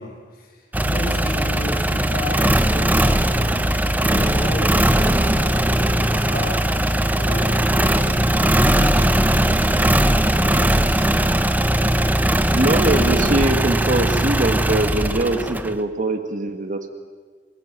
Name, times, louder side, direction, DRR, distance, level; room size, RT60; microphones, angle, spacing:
voice 1, 0.0-6.6 7.1-11.4, left 1 dB, 55° left, 0 dB, 6.1 m, -32 dB
sound 1, 0.7-15.8, right 1 dB, 10° right, 1.0 m, -19 dB
voice 2, 12.5-16.9, right 2 dB, 45° right, 7 dB, 2.0 m, -22 dB
28.0 x 21.0 x 7.6 m, 1.5 s
head